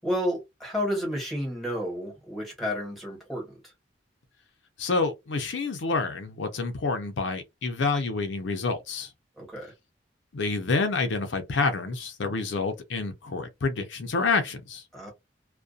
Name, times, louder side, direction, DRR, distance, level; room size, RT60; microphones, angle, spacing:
voice 1, 0.0-3.5 9.4-9.7 14.9-15.1, equal, ahead, 1.1 m, -31 dB
voice 2, 4.8-9.1 10.3-14.8, left 3 dB, 80° left, 0.5 m, -28 dB
2.4 x 2.2 x 2.5 m
head